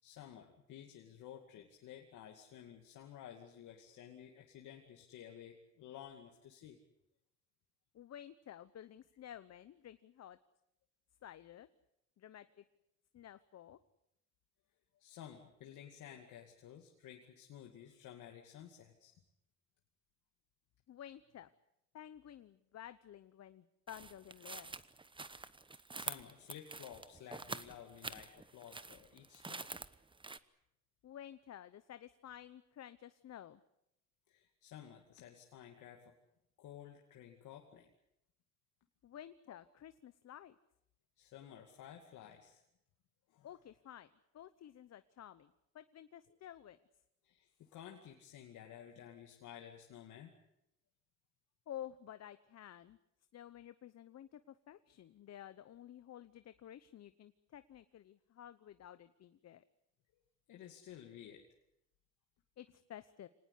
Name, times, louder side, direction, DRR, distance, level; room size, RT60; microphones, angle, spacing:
voice 1, 0.0-6.8 14.9-19.1 25.9-29.7 34.3-36.1 36.6-37.9 39.5-39.6 41.2-42.6 43.3-43.5 47.2-50.3 60.5-61.4, left 10 dB, 85° left, 2 dB, 2.4 m, -54 dB
voice 2, 7.9-10.4 11.2-11.7 12.2-12.6 13.1-13.8 20.9-21.5 21.9-24.7 31.0-33.6 39.0-40.6 43.4-46.8 51.7-53.0 53.3-59.6 62.6-63.3, left 11 dB, 60° left, 13 dB, 0.9 m, -52 dB
sound 1, 23.9-30.4, right 3 dB, 15° right, 1.0 m, -47 dB
25.0 x 19.0 x 8.4 m, 0.81 s
cardioid pair, 90°, 30 cm